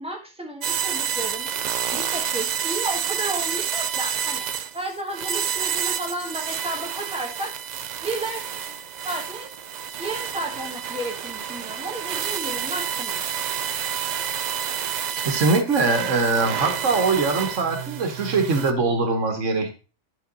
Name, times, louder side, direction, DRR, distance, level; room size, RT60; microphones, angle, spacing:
voice 1, 0.0-1.5 1.9-4.5 4.7-7.5 8.0-8.8 9.0-9.5 10.0-13.2, right 1 dB, 5° right, 1 dB, 1.5 m, -32 dB
sound 1, 0.6-18.7, right 8 dB, 70° right, 0.4 m, -29 dB
voice 2, 15.3-19.7, right 3 dB, 90° right, 5 dB, 1.6 m, -22 dB
9.8 x 4.2 x 3.9 m, 0.33 s
omnidirectional pair, 1.2 m